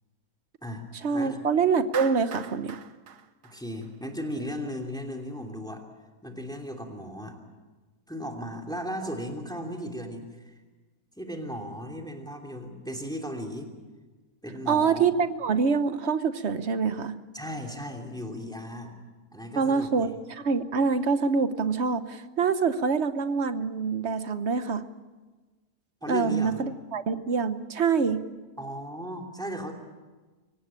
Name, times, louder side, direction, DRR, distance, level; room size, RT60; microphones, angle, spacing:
voice 1, 1.0-2.8 14.7-17.2 19.6-24.8 26.1-28.2, right 5 dB, 50° right, 11 dB, 1.1 m, -25 dB
Clapping, 1.9-4.2, right 8 dB, 80° right, 1.5 m, -41 dB
voice 2, 3.4-5.8 6.2-7.4 8.1-10.5 11.2-13.7 14.4-15.1 17.3-18.9 19.3-20.1 26.0-26.6 28.6-29.7, equal, ahead, 2 dB, 2.8 m, -36 dB
24.5 x 18.5 x 8.7 m, 1.3 s
omnidirectional pair, 1.7 m